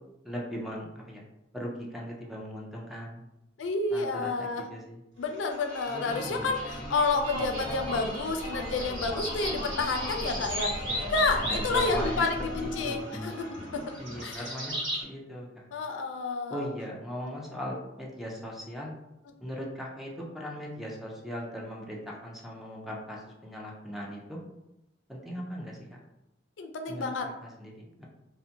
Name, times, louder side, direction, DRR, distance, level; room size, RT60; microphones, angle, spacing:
voice 1, 0.2-1.2 1.5-3.3 3.9-5.0 11.4-12.2 12.5-13.1 14.0-15.7 16.5-18.9 19.4-24.4 25.1-26.0 26.9-27.0 27.4-28.1, equal, ahead, -2 dB, 0.4 m, -39 dB
voice 2, 3.6-4.6 5.2-13.9 14.2-14.5 15.7-16.6 17.2-17.3 26.6-27.3, left 3 dB, 80° left, 5 dB, 0.4 m, -30 dB
sound 1, 5.3-15.0, equal, 70° right, 1.3 m, -35 dB
2.5 x 2.1 x 2.7 m, 0.91 s
head